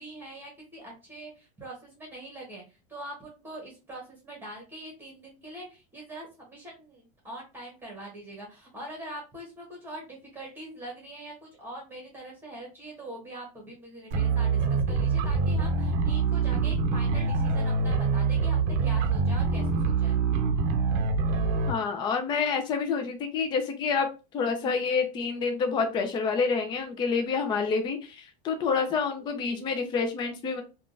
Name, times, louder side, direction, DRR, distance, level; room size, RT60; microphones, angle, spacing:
voice 1, 0.0-20.2, right 1 dB, 10° right, -2 dB, 1.2 m, -43 dB
sound 1, 14.1-21.7, right 4 dB, 50° right, 0.6 m, -25 dB
voice 2, 21.7-24.1 24.3-30.6, left 5 dB, 20° left, 6 dB, 0.5 m, -28 dB
3.5 x 2.4 x 2.5 m, 0.30 s
supercardioid pair, 145°, 21 cm